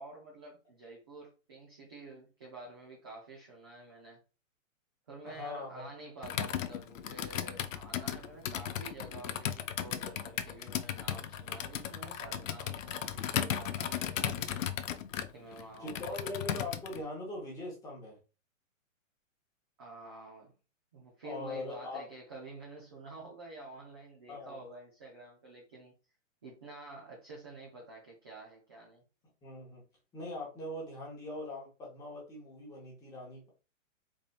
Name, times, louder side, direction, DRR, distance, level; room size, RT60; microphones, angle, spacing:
voice 1, 0.0-4.2 5.1-14.6 15.3-16.4 19.8-20.5 20.9-25.9 26.4-29.0, right 3 dB, 20° right, -3 dB, 0.4 m, -49 dB
voice 2, 5.2-5.9 15.8-18.2 21.2-22.1 24.3-24.6 29.4-29.8 30.1-33.5, left 2 dB, 10° left, -3 dB, 0.9 m, -41 dB
Computer keyboard, 6.2-17.0, left 9 dB, 75° left, 0.6 m, -36 dB
3.9 x 3.5 x 2.4 m, 0.32 s
hypercardioid pair, 160°, 40 cm